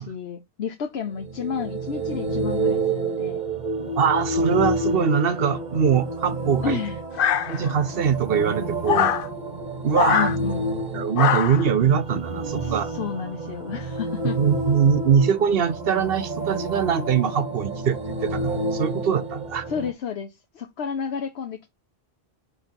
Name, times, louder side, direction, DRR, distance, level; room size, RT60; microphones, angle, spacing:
voice 1, 0.0-3.4 6.6-7.0 10.1-10.7 12.5-14.4 19.7-21.7, left 7 dB, 80° left, 1.1 m, -31 dB
sound 1, 1.1-19.9, right 2 dB, 45° right, 1.5 m, -29 dB
voice 2, 4.0-6.8 7.5-9.1 9.8-10.3 10.9-12.9 14.4-19.7, right 7 dB, 65° right, 1.0 m, -22 dB
sound 2, 7.2-7.9 8.9-9.3 9.9-10.4 11.2-11.7, left 9 dB, 60° left, 0.8 m, -22 dB
10.0 x 3.4 x 4.4 m
omnidirectional pair, 1.1 m